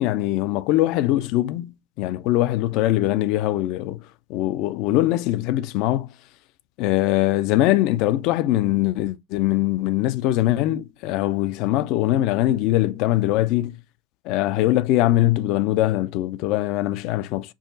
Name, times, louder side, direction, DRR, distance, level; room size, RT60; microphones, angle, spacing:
voice 1, 0.0-4.0 4.3-6.1 6.8-13.8 14.3-17.5, left 15 dB, 55° left, 0.4 m, -22 dB
4.7 x 2.8 x 2.6 m
supercardioid pair, 125°, 0 cm